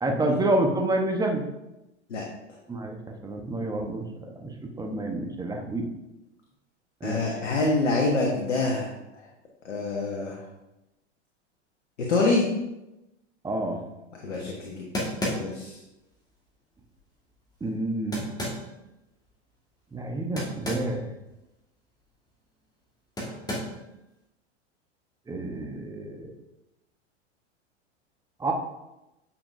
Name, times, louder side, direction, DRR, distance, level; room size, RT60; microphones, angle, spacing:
voice 1, 0.0-1.4 2.7-3.0 3.2-4.0 4.4-4.5 4.8-5.9 7.0-7.2 13.4-13.8 17.6-18.2 19.9-21.1 25.3-26.3 28.4-28.5, right 2 dB, 10° right, 2 dB, 1.1 m, -28 dB
voice 2, 7.0-8.9 9.6-10.4 12.0-12.5 14.2-14.8 15.3-15.8, left 3 dB, 85° left, -2 dB, 1.3 m, -26 dB
sound 1, 14.3-14.4 14.9-15.7 18.1-18.7 20.4-21.0 21.3-21.4 23.2-23.8, left 1 dB, 10° left, 1.8 m, -32 dB
8.7 x 5.7 x 2.7 m, 0.94 s
hypercardioid pair, 100°, 35 cm